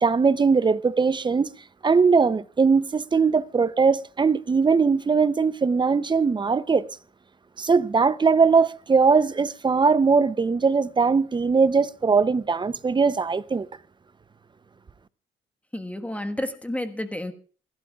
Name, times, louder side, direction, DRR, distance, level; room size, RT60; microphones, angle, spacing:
voice 1, 0.0-1.5 1.8-6.9 7.6-13.7, right 5 dB, 25° right, 0.6 m, -20 dB
voice 2, 15.7-17.3, left 1 dB, 5° left, 1.4 m, -30 dB
27.5 x 12.0 x 2.4 m
cardioid pair, 90°, 20 cm